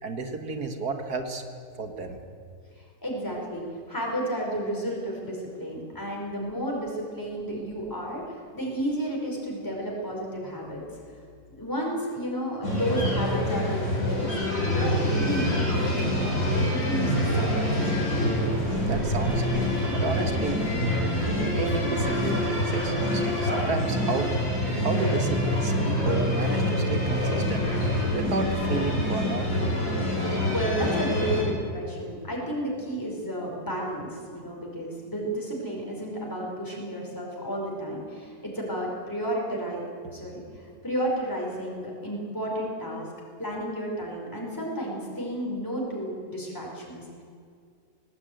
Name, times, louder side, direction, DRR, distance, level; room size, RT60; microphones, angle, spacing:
voice 1, 0.0-1.4 1.8-2.2 18.8-24.3 24.7-29.5, right 3 dB, 80° right, 6 dB, 2.3 m, -32 dB
voice 2, 2.8-10.8 11.5-14.3 14.7-18.1 30.5-39.8 40.1-43.1 43.4-47.2, equal, 10° left, -2 dB, 5.0 m, -32 dB
sound 1, 12.6-31.4, left 1 dB, 60° left, 6.2 m, -26 dB
21.0 x 18.5 x 9.3 m, 2.2 s
omnidirectional pair, 1.6 m